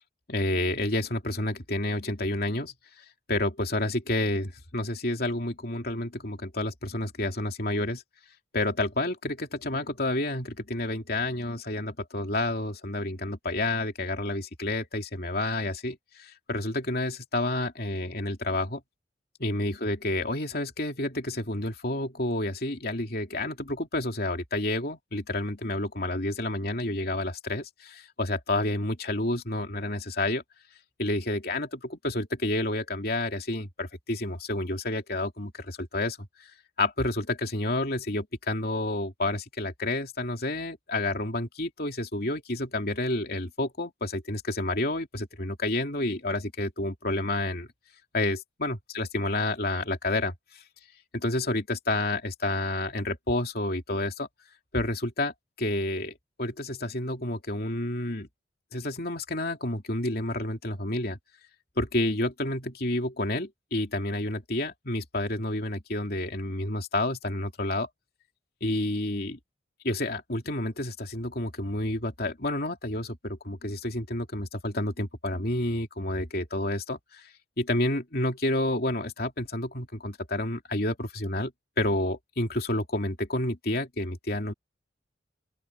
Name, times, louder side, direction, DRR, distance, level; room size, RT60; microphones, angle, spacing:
voice 1, 0.3-2.7 3.3-8.0 8.5-18.8 19.4-30.4 31.0-36.3 36.8-47.7 48.1-50.6 51.1-54.3 54.7-55.3 55.6-58.3 58.7-61.2 61.8-67.9 68.6-69.4 69.8-77.2 77.6-81.5 81.8-84.5, left 1 dB, 50° left, 2.9 m, -30 dB
open air
head